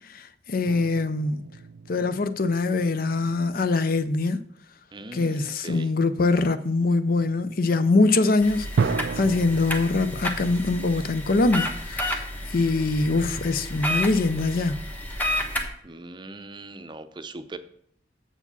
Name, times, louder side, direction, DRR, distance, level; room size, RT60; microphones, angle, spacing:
voice 1, 0.1-1.4 1.9-4.4 5.1-14.8, left 3 dB, 55° left, 0.6 m, -23 dB
sound 1, 0.6-3.6 4.2-4.5 8.8-13.1, right 5 dB, 80° right, 0.4 m, -34 dB
voice 2, 4.9-5.9 15.8-17.6, right 2 dB, 25° right, 0.6 m, -40 dB
sound 2, 8.4-15.7, left 1 dB, 10° left, 1.0 m, -31 dB
7.1 x 4.9 x 6.9 m
head